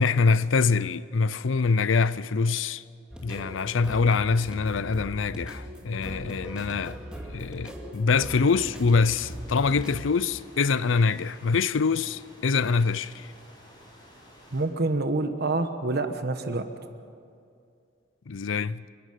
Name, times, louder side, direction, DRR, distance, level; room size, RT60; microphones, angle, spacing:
voice 1, 0.0-2.8 3.2-7.0 7.3-13.3 18.3-18.8, left 4 dB, 80° left, 0.5 m, -24 dB
sound 1, 3.1-10.1, equal, 5° right, 2.3 m, -40 dB
sound 2, 8.3-14.6, equal, 20° left, 6.1 m, -52 dB
voice 2, 14.5-16.7, right 2 dB, 55° right, 1.1 m, -27 dB
29.0 x 11.5 x 9.1 m
head